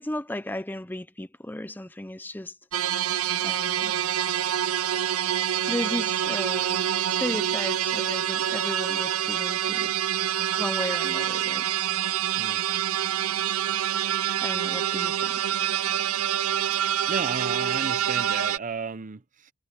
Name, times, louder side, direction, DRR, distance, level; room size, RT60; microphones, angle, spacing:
voice 1, 0.0-2.6 3.4-4.0 5.7-6.9 7.2-10.0 10.6-11.7 14.4-15.5, left 1 dB, 10° left, 0.7 m, -35 dB
sound 1, 2.7-18.6, right 10 dB, 70° right, 0.6 m, -26 dB
sound 2, 6.4-19.0, left 4 dB, 90° left, 4.3 m, -59 dB
voice 2, 17.1-19.5, right 5 dB, 35° right, 0.7 m, -33 dB
head